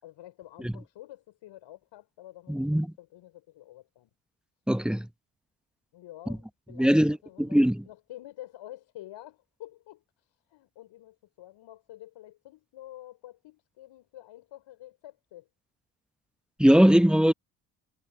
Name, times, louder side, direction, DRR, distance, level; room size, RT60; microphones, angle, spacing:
voice 1, 0.0-4.1 5.9-7.6 7.8-15.5, left 14 dB, 60° left, 5.8 m, -48 dB
voice 2, 2.5-2.9 4.7-5.1 6.8-7.8 16.6-17.3, equal, ahead, 1.8 m, -21 dB
figure-of-eight pair, 45°, 50 cm